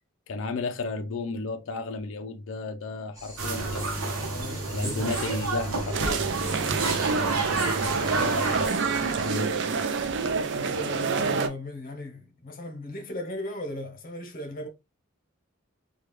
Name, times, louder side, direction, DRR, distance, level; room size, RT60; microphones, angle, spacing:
voice 1, 0.3-4.1 4.7-6.2 9.2-9.5, left 3 dB, 60° left, 0.4 m, -33 dB
sound 1, 3.1-9.3, equal, 15° right, 1.3 m, -43 dB
sound 2, 3.4-8.7, right 3 dB, 80° right, 0.8 m, -29 dB
voice 2, 4.3-5.2 7.4-8.7 10.5-14.7, left 1 dB, 40° left, 0.8 m, -38 dB
sound 3, 5.9-11.5, right 4 dB, 55° right, 0.4 m, -27 dB
3.3 x 2.3 x 2.9 m
head